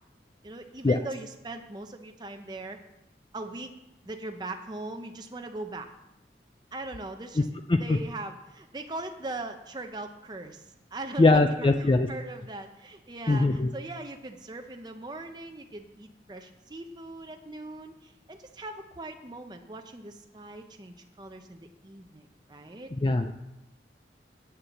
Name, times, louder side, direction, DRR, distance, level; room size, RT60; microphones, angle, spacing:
voice 1, 0.4-2.8 3.3-3.7 4.0-5.9 6.7-7.5 7.8-22.9, right 2 dB, 25° right, 5 dB, 0.6 m, -40 dB
voice 2, 11.2-12.1 13.3-13.7 22.9-23.4, left 2 dB, 25° left, 6 dB, 0.4 m, -22 dB
9.0 x 6.9 x 7.0 m, 0.93 s
head